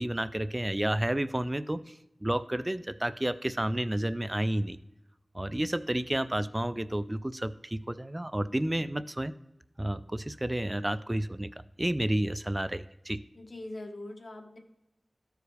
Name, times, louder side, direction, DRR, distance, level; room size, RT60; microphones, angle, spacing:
voice 1, 0.0-4.8 5.3-9.3 9.8-11.5 11.8-13.2, right 1 dB, 20° right, 14 dB, 0.3 m, -31 dB
voice 2, 13.3-14.6, left 1 dB, 60° left, 3 dB, 1.3 m, -42 dB
14.0 x 4.8 x 3.3 m, 0.88 s
wide cardioid pair, 55°, 0 cm